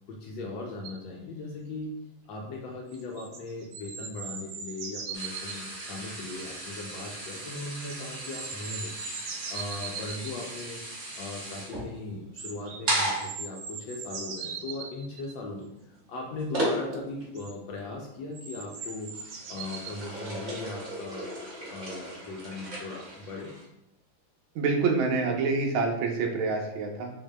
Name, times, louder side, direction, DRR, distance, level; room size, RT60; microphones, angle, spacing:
voice 1, 0.1-1.9 2.3-9.0 9.5-10.8 11.2-15.7 16.1-21.3 21.7-23.5, left 2 dB, 75° left, -1 dB, 1.2 m, -38 dB
sound 1, 0.8-1.0 2.9-5.6 7.9-10.3 12.4-12.8 13.2-15.3 16.9-17.0 17.4-17.5 18.3-20.0 20.5-20.6, right 6 dB, 90° right, 1.5 m, -40 dB
sound 2, 5.1-17.3 17.7-18.1 18.6-23.7, right 1 dB, 50° right, 0.9 m, -36 dB
voice 2, 24.5-27.1, right 4 dB, 75° right, 2 dB, 1.4 m, -27 dB
5.6 x 2.8 x 2.2 m, 0.83 s
omnidirectional pair, 2.4 m